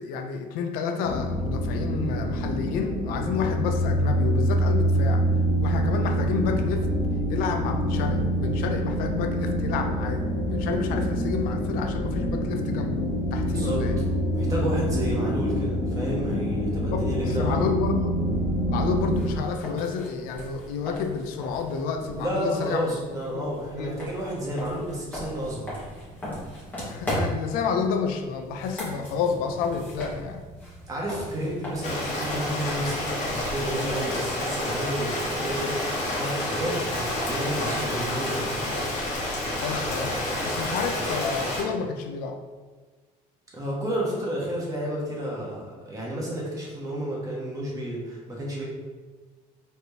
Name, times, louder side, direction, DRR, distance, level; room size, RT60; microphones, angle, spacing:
voice 1, 0.0-5.3 5.6-6.9 7.3-10.3 10.5-13.0 13.3-14.0 16.9-18.2 18.7-23.0 23.3-23.5 23.7-23.9 26.8-30.4 39.6-40.2 40.4-42.4, left 5 dB, 85° left, 5 dB, 0.5 m, -30 dB
sound 1, 1.0-19.3, equal, 25° left, 0.8 m, -26 dB
voice 2, 14.3-17.7 22.2-25.7 30.9-35.7 36.1-38.5 43.5-48.6, equal, 25° right, -4 dB, 1.2 m, -31 dB
sound 2, 18.9-35.0, equal, 10° left, 1.4 m, -38 dB
Rain, 31.8-41.6, left 1 dB, 50° left, 1.3 m, -29 dB
4.2 x 3.3 x 2.8 m, 1.3 s
cardioid pair, 140°, 15 cm